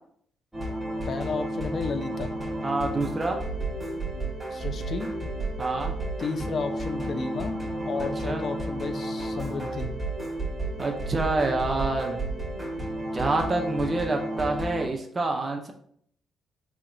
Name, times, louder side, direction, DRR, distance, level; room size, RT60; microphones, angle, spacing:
sound 1, 0.5-14.9, right 1 dB, 5° right, 1.1 m, -32 dB
voice 1, 1.1-2.3 4.5-5.1 6.2-7.6 7.9-9.9, left 4 dB, 50° left, 8 dB, 0.4 m, -32 dB
voice 2, 2.6-3.4 5.6-5.9 8.2-8.4 10.8-12.2 13.1-15.7, right 2 dB, 25° right, 3 dB, 0.4 m, -27 dB
4.1 x 2.8 x 2.5 m, 0.65 s
cardioid pair, 90°, 0 cm